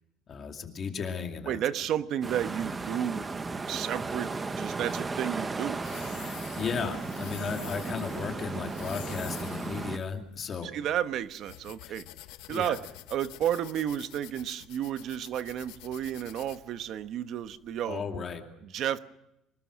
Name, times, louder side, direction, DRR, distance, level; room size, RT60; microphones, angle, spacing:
voice 1, 0.3-1.6 6.2-10.7 11.8-12.0 12.5-12.8 17.9-18.4, left 5 dB, 25° left, 4 dB, 2.4 m, -35 dB
voice 2, 1.5-3.3 3.6-5.8 7.7-7.9 10.6-12.1 12.5-12.8 13.1-18.1 18.6-19.0, right 10 dB, 45° right, 12 dB, 1.0 m, -32 dB
sound 1, 2.2-10.0, right 3 dB, 15° right, 0.9 m, -35 dB
sound 2, 4.8-17.8, left 16 dB, 90° left, 1.1 m, -48 dB
25.0 x 20.5 x 6.3 m, 0.86 s
cardioid pair, 180°, 0 cm